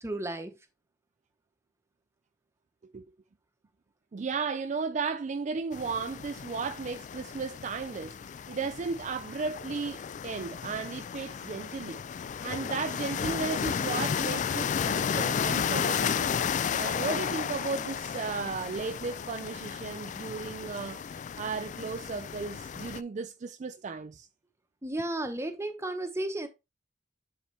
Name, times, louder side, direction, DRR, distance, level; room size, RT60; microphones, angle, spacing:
voice 1, 0.0-0.5 24.8-26.5, right 1 dB, 15° right, 1.0 m, -33 dB
voice 2, 4.1-12.0 12.4-16.3 16.7-24.3, right 4 dB, 40° right, 0.4 m, -35 dB
sound 1, 5.7-23.0, left 7 dB, 40° left, 0.3 m, -33 dB
9.4 x 4.3 x 3.3 m
head